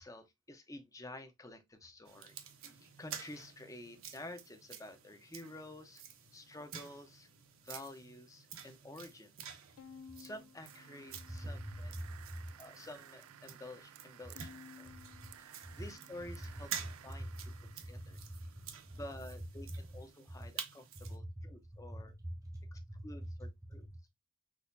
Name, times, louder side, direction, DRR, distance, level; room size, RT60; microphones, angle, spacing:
voice 1, 0.0-2.4 2.7-6.0 6.3-7.3 7.6-9.6 10.2-11.9 12.6-14.5 14.8-14.9 15.4-16.7 17.0-17.3 17.7-18.2 18.9-22.1 22.7-23.9, left 1 dB, 15° left, 0.8 m, -50 dB
sound 1, 2.0-21.2, right 8 dB, 70° right, 1.1 m, -50 dB
Bowed string instrument, 9.8-12.1 12.6-13.4 14.4-16.9, left 6 dB, 70° left, 0.4 m, -58 dB
sound 2, 10.6-18.9, right 10 dB, 85° right, 0.4 m, -57 dB
voice 2, 11.3-12.5 14.8-15.0 17.2-17.5 17.9-18.0 18.4-19.0 19.7-19.8 20.4-20.5 21.0-23.0 23.4-23.5, equal, 15° right, 0.6 m, -44 dB
6.2 x 3.1 x 2.7 m
head